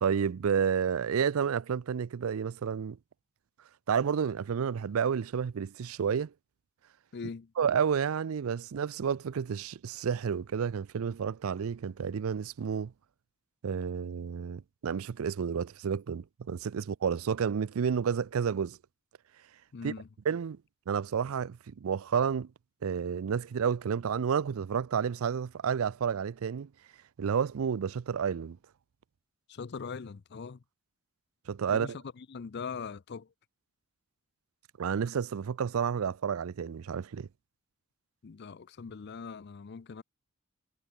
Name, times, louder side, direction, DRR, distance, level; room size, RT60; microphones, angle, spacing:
voice 1, 0.0-3.0 3.9-6.3 7.6-12.9 13.6-18.8 19.8-19.9 20.2-20.6 20.9-22.5 22.8-26.7 27.2-28.6 31.5-32.0 34.8-37.3, right 7 dB, 80° right, 0.4 m, -30 dB
voice 2, 7.1-7.5 19.7-20.1 29.5-30.6 31.7-33.3 38.2-40.0, left 5 dB, 50° left, 0.5 m, -41 dB
head